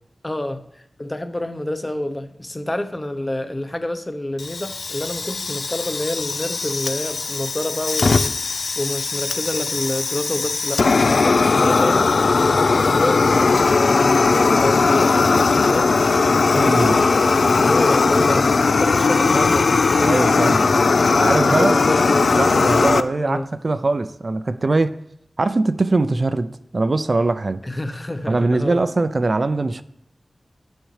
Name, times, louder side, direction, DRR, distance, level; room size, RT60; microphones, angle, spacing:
voice 1, 0.2-15.9 16.5-19.7 20.0-20.5 21.5-22.3 23.2-23.5 27.6-28.8, left 1 dB, 20° left, 0.8 m, -28 dB
Fire, 4.4-23.0, left 4 dB, 80° left, 0.4 m, -18 dB
voice 2, 16.5-17.0 19.9-20.6 21.1-21.7 22.4-25.0 25.4-27.6 28.3-29.8, right 2 dB, 55° right, 0.4 m, -21 dB
10.0 x 6.3 x 3.2 m
wide cardioid pair, 55°, 0 cm